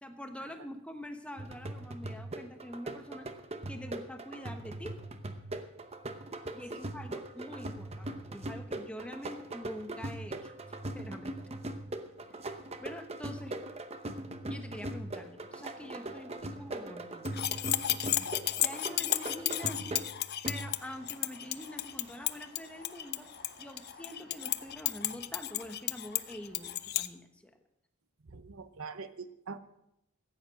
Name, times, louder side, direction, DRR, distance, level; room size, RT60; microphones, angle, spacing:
voice 1, 0.0-3.3 3.7-5.0 6.5-11.3 12.8-13.6 14.5-17.4 18.6-20.0 20.4-23.3 23.6-27.5, left 1 dB, 5° left, 6 dB, 1.0 m, -45 dB
sound 1, 1.4-21.0, right 1 dB, 30° right, 0.8 m, -40 dB
sound 2, 17.3-27.1, left 14 dB, 50° left, 0.5 m, -33 dB
sound 3, 20.6-27.0, right 1 dB, 55° right, 5.3 m, -58 dB
voice 2, 28.3-29.6, right 4 dB, 75° right, 12 dB, 0.8 m, -44 dB
14.5 x 9.0 x 6.2 m, 0.82 s
head